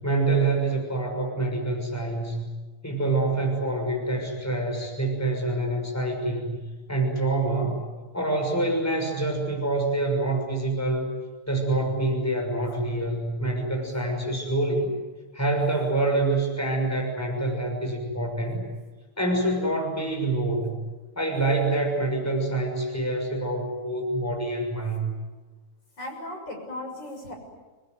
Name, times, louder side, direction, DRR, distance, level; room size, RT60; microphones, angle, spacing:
voice 1, 0.0-2.4 2.8-6.6 6.9-7.8 8.1-11.1 11.5-14.9 15.3-18.6 19.2-20.8 21.2-25.1, right 2 dB, 5° left, 1 dB, 6.4 m, -26 dB
voice 2, 26.0-27.3, left 1 dB, 50° left, 1 dB, 7.5 m, -37 dB
28.0 x 21.5 x 9.6 m, 1.3 s
omnidirectional pair, 2.4 m